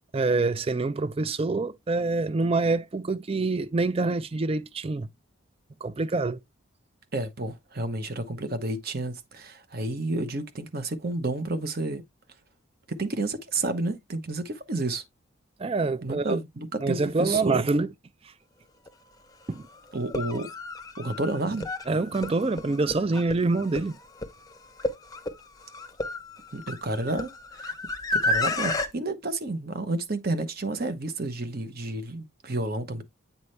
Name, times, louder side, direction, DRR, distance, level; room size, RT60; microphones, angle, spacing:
voice 1, 0.1-5.1 5.8-6.4 15.6-16.4 16.8-17.9 19.5-19.6 21.9-24.0, right 3 dB, 25° right, 0.4 m, -26 dB
voice 2, 7.1-12.0 12.9-15.0 16.0-17.7 19.9-20.5 21.0-21.7 26.5-27.7 28.1-33.0, right 2 dB, 45° right, 0.9 m, -30 dB
sound 1, 18.9-19.0 20.0-28.9, left 2 dB, 15° left, 0.7 m, -31 dB
8.3 x 4.1 x 3.3 m
head